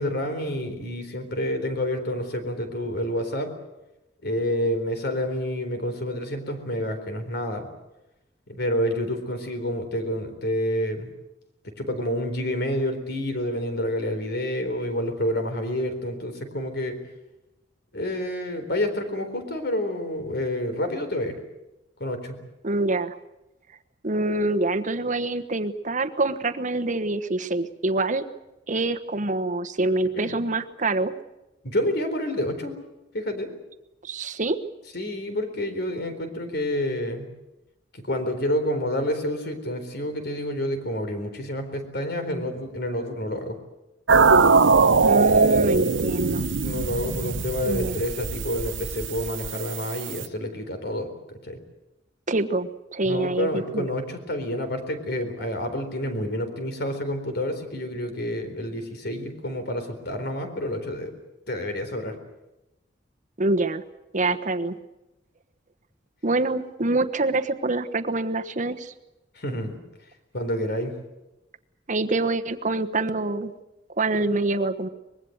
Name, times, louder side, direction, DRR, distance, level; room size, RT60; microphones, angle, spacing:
voice 1, 0.0-3.5 4.2-7.7 8.5-11.1 11.8-17.0 17.9-21.4 22.0-22.4 30.1-30.4 31.6-32.8 33.1-33.5 34.9-37.3 37.9-43.6 46.5-51.6 53.0-61.1 61.5-62.2 69.3-69.7 70.3-71.0, left 1 dB, 60° left, 7 dB, 4.1 m, -28 dB
voice 2, 22.6-23.2 24.0-28.2 28.7-31.1 34.0-34.6 45.0-46.5 47.6-48.0 52.3-53.9 63.4-63.8 64.1-64.7 66.2-68.9 71.9-73.5 74.0-74.9, right 2 dB, 40° right, 8 dB, 1.2 m, -25 dB
sound 1, 44.1-50.3, right 4 dB, 90° right, 0.8 m, -21 dB
24.0 x 21.5 x 8.0 m, 0.96 s
head